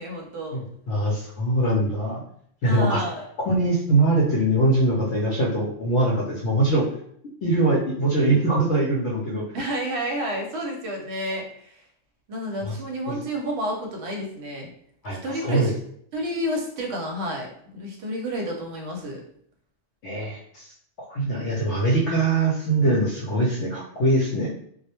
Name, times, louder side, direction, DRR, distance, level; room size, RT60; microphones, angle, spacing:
voice 1, 0.0-0.6 2.6-3.2 9.5-11.8 12.3-14.7 15.2-15.7 16.1-17.5 17.7-19.2, equal, 65° right, 1 dB, 0.8 m, -30 dB
voice 2, 0.5-2.2 2.6-3.0 3.4-6.9 7.4-9.4 12.6-12.7 13.1-13.2 15.0-15.2 15.4-15.7 20.0-20.7 21.1-24.5, right 2 dB, 70° left, -4 dB, 0.8 m, -22 dB
2.3 x 2.0 x 2.8 m, 0.66 s
omnidirectional pair, 1.3 m